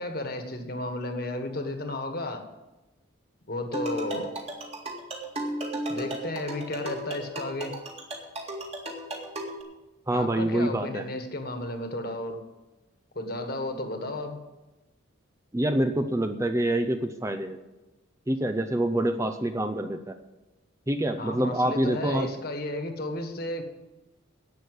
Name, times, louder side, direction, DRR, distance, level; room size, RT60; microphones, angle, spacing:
voice 1, 0.0-2.4 3.5-4.3 5.9-7.7 10.1-12.4 13.1-14.4 21.2-23.6, left 1 dB, 45° left, 6 dB, 1.6 m, -33 dB
sound 1, 3.7-9.6, right 1 dB, 30° right, 2.0 m, -35 dB
voice 2, 10.1-11.1 15.5-17.6 18.3-20.2 20.9-22.3, right 1 dB, 15° right, 8 dB, 0.5 m, -26 dB
11.0 x 8.4 x 8.0 m, 1.1 s
head